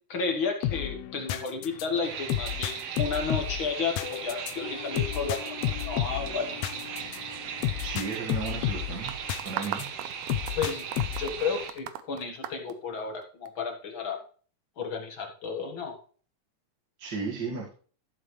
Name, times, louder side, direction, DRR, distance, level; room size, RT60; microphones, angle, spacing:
voice 1, 0.1-6.5 10.6-10.8 11.2-14.2 14.8-16.0, left 5 dB, 50° left, 3 dB, 1.9 m, -32 dB
sound 1, 0.6-9.9 10.3-11.4, left 12 dB, 80° left, 1.7 m, -32 dB
sound 2, 2.0-11.7, right 7 dB, 65° right, 1.8 m, -38 dB
voice 2, 7.8-9.2 9.4-9.9 17.0-17.7, right 5 dB, 40° right, -2 dB, 2.0 m, -34 dB
sound 3, 9.1-13.5, right 11 dB, 90° right, 2.2 m, -37 dB
13.0 x 7.6 x 3.2 m, 0.41 s
omnidirectional pair, 3.4 m